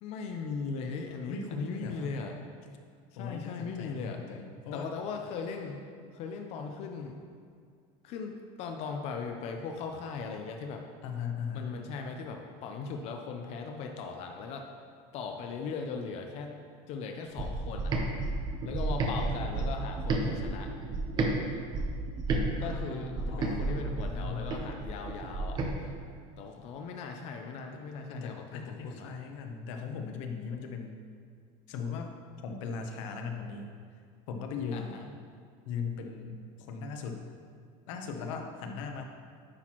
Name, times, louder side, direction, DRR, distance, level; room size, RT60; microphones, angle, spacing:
voice 1, 0.0-2.4 3.1-4.2 4.7-5.8 6.1-7.2 8.0-10.8 11.5-14.7 15.1-16.5 16.9-17.9 18.7-20.7 22.6-25.6 26.4-29.1 34.7-35.1, left 5 dB, 40° left, 3 dB, 0.5 m, -38 dB
voice 2, 1.3-2.1 3.2-4.9 11.0-11.7 22.6-24.6 27.7-27.8 28.1-31.0 31.7-32.1 32.4-33.7 34.3-35.0 35.6-36.4 36.7-37.2 37.9-39.0, left 5 dB, 80° left, 4 dB, 0.9 m, -38 dB
sound 1, 17.4-21.3 21.7-25.7, right 2 dB, 25° right, 0.8 m, -31 dB
9.9 x 6.0 x 3.0 m, 2.2 s
cardioid pair, 165°, 16 cm